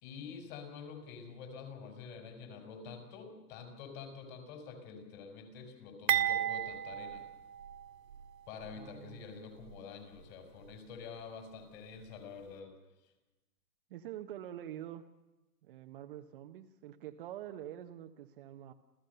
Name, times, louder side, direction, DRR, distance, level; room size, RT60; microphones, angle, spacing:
voice 1, 0.0-7.3 8.5-12.7, left 6 dB, 30° left, 6 dB, 5.2 m, -47 dB
sound 1, 6.1-8.2 8.6-8.8 9.6-9.8, right 11 dB, 80° right, 2.1 m, -33 dB
voice 2, 8.7-9.2 13.9-15.1 15.6-18.7, right 12 dB, 35° right, 6 dB, 0.9 m, -46 dB
28.0 x 15.5 x 6.7 m, 1.1 s
hypercardioid pair, 145°, 49 cm